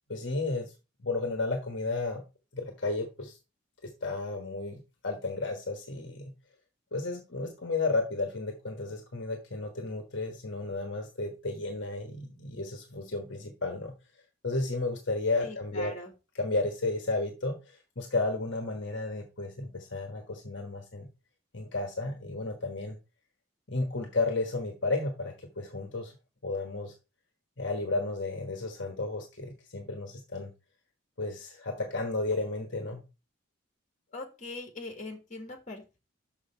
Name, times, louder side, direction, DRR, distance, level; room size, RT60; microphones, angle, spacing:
voice 1, 0.1-0.7 1.0-2.2 2.5-3.4 4.0-6.3 6.9-13.9 14.4-15.9 16.4-21.1 21.5-23.0 23.7-26.1 26.4-26.9 27.6-30.5 31.2-33.0, left 3 dB, 60° left, 4 dB, 1.3 m, -33 dB
voice 2, 15.4-16.1 34.1-36.0, left 2 dB, 35° left, 4 dB, 1.9 m, -41 dB
6.4 x 6.1 x 4.4 m, 0.29 s
head